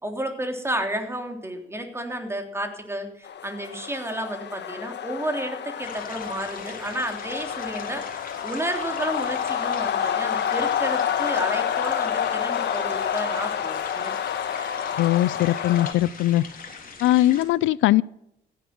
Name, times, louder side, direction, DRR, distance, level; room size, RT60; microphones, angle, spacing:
voice 1, 0.0-14.1, right 1 dB, 10° right, 3.4 m, -31 dB
sound 1, 3.2-15.9, left 9 dB, 60° left, 1.5 m, -28 dB
sound 2, 5.8-17.4, left 5 dB, 45° left, 3.6 m, -42 dB
voice 2, 14.9-16.4 17.0-18.0, left 15 dB, 80° left, 0.4 m, -20 dB
16.0 x 11.0 x 6.1 m
cardioid pair, 90°, 20 cm